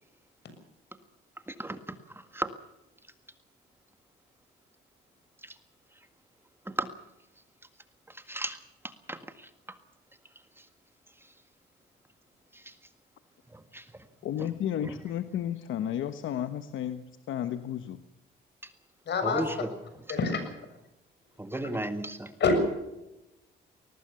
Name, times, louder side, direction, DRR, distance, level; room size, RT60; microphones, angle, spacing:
voice 1, 1.5-2.5 5.4-5.6 6.6-6.9 8.1-9.8 10.6-10.7 11.2-11.3 12.5-12.7 13.5-14.0 14.4-14.5 14.8-14.9 18.6-18.7 19.2-19.7 20.1-20.2 21.4-22.3, right 1 dB, 10° right, 9 dB, 1.8 m, -36 dB
voice 2, 14.2-18.0, left 10 dB, 75° left, 10 dB, 1.2 m, -33 dB
voice 3, 19.1-19.4 20.1-20.4 21.6-21.8 22.4-22.7, left 3 dB, 60° left, 8 dB, 7.0 m, -25 dB
21.0 x 19.5 x 7.0 m, 0.93 s
cardioid pair, 90°, 20 cm